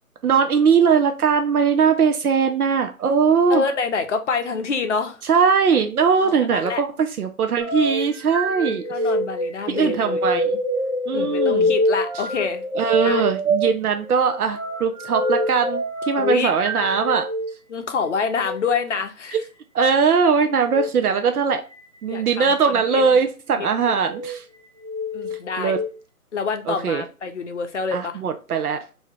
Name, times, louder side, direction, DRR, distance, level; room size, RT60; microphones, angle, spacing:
voice 1, 0.2-3.6 5.2-8.8 9.7-10.6 11.1-11.7 12.8-17.3 19.3-19.4 19.7-21.6 22.0-24.4 25.6-25.8 26.7-27.0 27.9-28.8, right 6 dB, 75° right, 0.6 m, -20 dB
voice 2, 3.5-5.2 6.2-6.8 8.9-10.2 11.1-12.7 13.0-13.3 16.2-16.5 17.7-19.4 22.1-23.2 23.6-23.9 25.1-25.8 26.3-28.1, left 5 dB, 50° left, 0.6 m, -27 dB
sound 1, 7.6-17.5 18.3-18.6 20.6-20.9 21.7-22.2 22.8-23.1 23.8-24.3 24.8-25.9, equal, 50° right, 1.4 m, -25 dB
2.9 x 2.7 x 3.2 m
hypercardioid pair, 160°, 45 cm